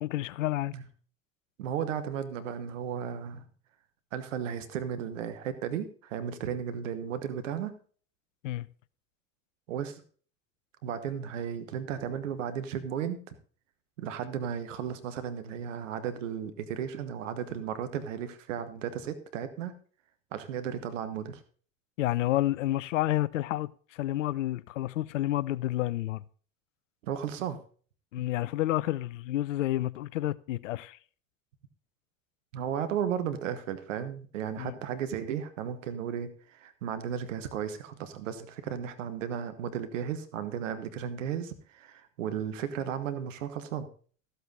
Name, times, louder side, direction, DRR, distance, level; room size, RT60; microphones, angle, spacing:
voice 1, 0.0-0.7 8.4-8.7 22.0-26.2 28.1-31.0 34.6-34.8, left 15 dB, 85° left, 0.5 m, -30 dB
voice 2, 1.6-3.5 4.1-7.8 9.7-10.0 10.8-13.4 14.0-19.7 20.3-21.4 27.0-27.6 32.5-43.9, right 8 dB, 85° right, 1.3 m, -34 dB
14.0 x 8.0 x 4.0 m
hypercardioid pair, 65°, 37 cm